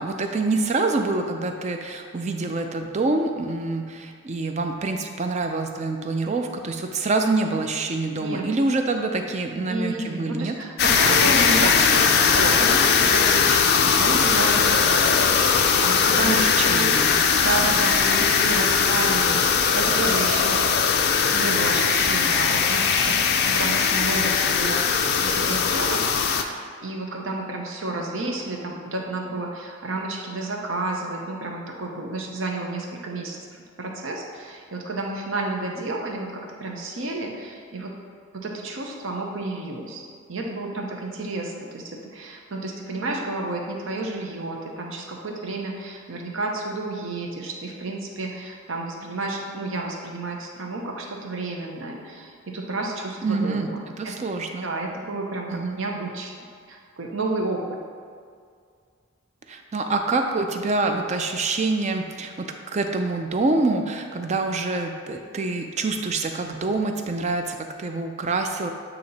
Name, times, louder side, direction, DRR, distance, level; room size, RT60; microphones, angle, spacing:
voice 1, 0.0-10.5 11.1-12.3 16.2-17.2 53.2-53.7 54.0-54.7 55.5-55.8 59.5-68.7, right 3 dB, 30° right, 5 dB, 0.4 m, -26 dB
voice 2, 9.5-16.9 17.4-20.6 21.3-24.8 25.2-37.9 38.3-40.0 40.3-54.3 54.6-56.3 56.7-57.8, right 2 dB, 65° right, 0 dB, 0.8 m, -31 dB
sound 1, 10.8-26.4, left 6 dB, 50° left, 0.4 m, -20 dB
8.2 x 2.9 x 4.0 m, 2.2 s
head